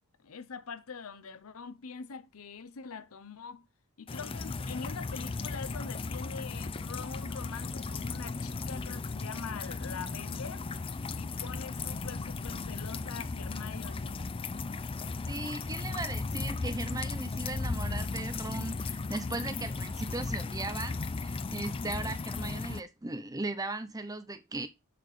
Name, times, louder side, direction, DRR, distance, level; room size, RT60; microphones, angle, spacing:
voice 1, 0.2-3.7 4.0-10.7 11.1-14.2, left 5 dB, 70° left, 0.7 m, -44 dB
sound 1, 4.1-22.8, left 3 dB, 25° left, 0.4 m, -36 dB
voice 2, 15.3-24.7, right 2 dB, 15° right, 0.6 m, -38 dB
6.7 x 5.9 x 3.2 m
head